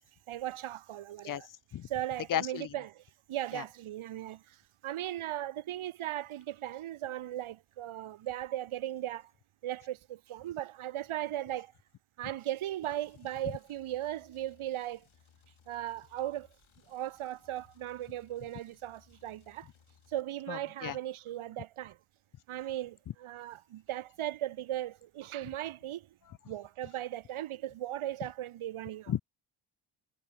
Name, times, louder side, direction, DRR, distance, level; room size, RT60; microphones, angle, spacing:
voice 1, 0.3-1.5 1.9-3.0 3.3-9.3 9.6-11.7 12.2-15.1 15.7-16.5 16.9-19.7 20.1-22.0 22.5-26.1 26.5-29.1, right 13 dB, 80° right, 1.0 m, -37 dB
voice 2, 1.2-1.9 2.3-2.7 3.5-3.6 20.5-21.0 29.1-29.2, left 11 dB, 45° left, 0.5 m, -34 dB
sound 1, 12.8-20.2, left 8 dB, 70° left, 7.4 m, -65 dB
wide cardioid pair, 135°, 49 cm